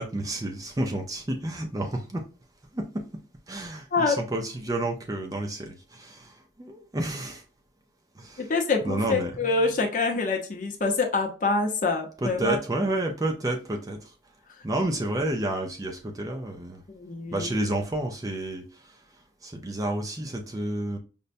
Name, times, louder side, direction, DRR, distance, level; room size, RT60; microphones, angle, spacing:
voice 1, 0.0-2.2 2.7-3.0 3.5-7.4 8.2-8.5 8.8-9.8 12.2-14.1 14.6-16.8 17.3-19.0 19.4-21.0, right 1 dB, 20° right, 0.4 m, -30 dB
voice 2, 8.4-12.6 16.9-17.5, left 3 dB, 45° left, 0.7 m, -26 dB
5.2 x 2.1 x 2.5 m
head